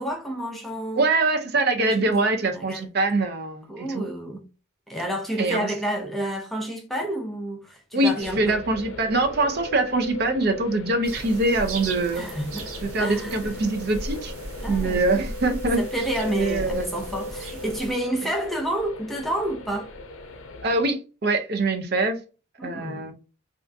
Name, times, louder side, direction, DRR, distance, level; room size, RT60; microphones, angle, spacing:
voice 1, 0.0-1.0 1.8-2.0 2.5-2.9 3.7-4.5 4.9-8.6 12.1-12.7 13.0-13.6 14.6-15.2 15.8-19.9 22.6-23.1, right 1 dB, ahead, 0.5 m, -30 dB
voice 2, 1.0-4.1 5.4-5.7 7.9-12.2 12.8-14.3 14.7-15.8 16.3-16.9 20.6-22.2 22.6-23.1, right 2 dB, 50° right, 0.5 m, -24 dB
sound 1, 8.2-20.8, left 1 dB, 75° left, 0.6 m, -38 dB
sound 2, 11.0-17.9, right 2 dB, 90° right, 0.7 m, -36 dB
3.4 x 2.5 x 2.5 m
head